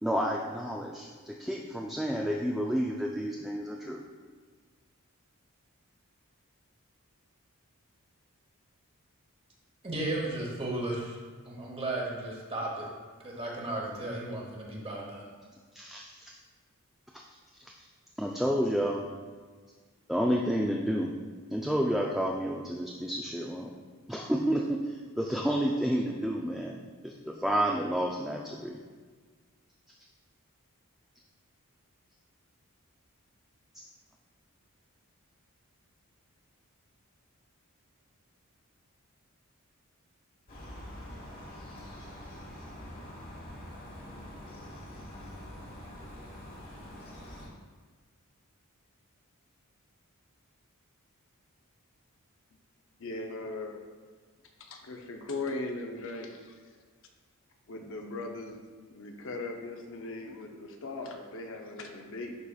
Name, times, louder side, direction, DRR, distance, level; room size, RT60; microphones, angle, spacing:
voice 1, 0.0-4.0 15.7-16.3 18.2-19.1 20.1-21.1 21.5-23.7 24.1-28.8, equal, ahead, -2 dB, 0.3 m, -30 dB
voice 2, 9.8-11.2 11.4-12.9 13.2-15.3, right 2 dB, 25° right, -1 dB, 1.1 m, -34 dB
sound 1, 40.5-47.5, left 1 dB, 40° left, 1.3 m, -45 dB
voice 3, 53.0-53.8 54.6-56.6 57.7-58.6 58.9-62.3, left 2 dB, 60° left, 3 dB, 0.7 m, -39 dB
11.0 x 4.1 x 2.4 m, 1.5 s
head